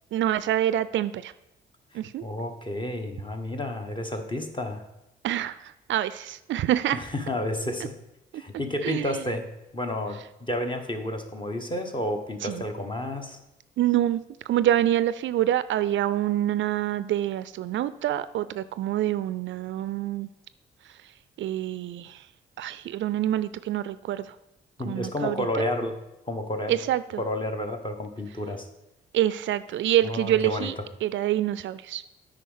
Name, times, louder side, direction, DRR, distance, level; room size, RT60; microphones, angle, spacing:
voice 1, 0.1-1.3 1.9-2.2 5.2-7.0 8.8-9.2 12.4-12.6 13.8-14.2 14.5-20.3 21.4-22.2 22.6-24.4 24.9-25.7 26.7-27.2 29.1-30.7 31.0-32.0, right 12 dB, 65° right, 15 dB, 0.4 m, -26 dB
voice 2, 1.9-4.8 6.9-7.9 8.3-9.5 9.7-13.4 24.8-26.0 26.3-26.8 27.2-28.7 30.0-30.7, left 1 dB, 25° left, 5 dB, 1.4 m, -31 dB
8.3 x 5.1 x 5.6 m, 0.89 s
supercardioid pair, 70°, 21 cm